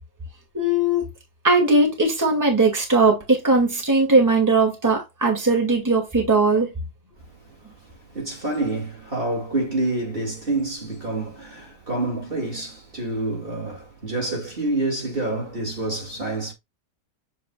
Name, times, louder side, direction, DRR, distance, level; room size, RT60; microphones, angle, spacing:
voice 1, 0.5-1.1 1.4-6.7, right 2 dB, 10° right, 2.3 m, -19 dB
voice 2, 7.3-16.5, right 2 dB, 35° right, 2.5 m, -28 dB
7.7 x 5.3 x 2.4 m
omnidirectional pair, 1.6 m